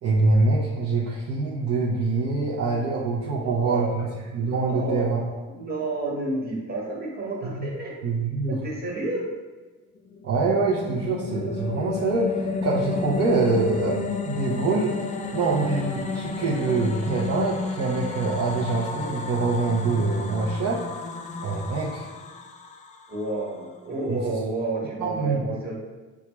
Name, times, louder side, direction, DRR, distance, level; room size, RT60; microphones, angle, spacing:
voice 1, 0.0-4.1 4.3-5.2 7.4-7.7 8.0-8.6 10.2-14.9 15.3-20.9 21.4-22.1 24.1-24.2 25.0-25.5, right 3 dB, 60° right, -6 dB, 0.7 m, -25 dB
voice 2, 3.4-3.9 4.6-7.9 8.5-9.3 15.1-15.4 23.1-25.8, right 2 dB, 30° right, -4 dB, 1.3 m, -30 dB
sound 1, 10.1-23.4, left 3 dB, 25° left, 0.4 m, -32 dB
5.4 x 2.4 x 3.1 m, 1.2 s
cardioid pair, 90°, 30 cm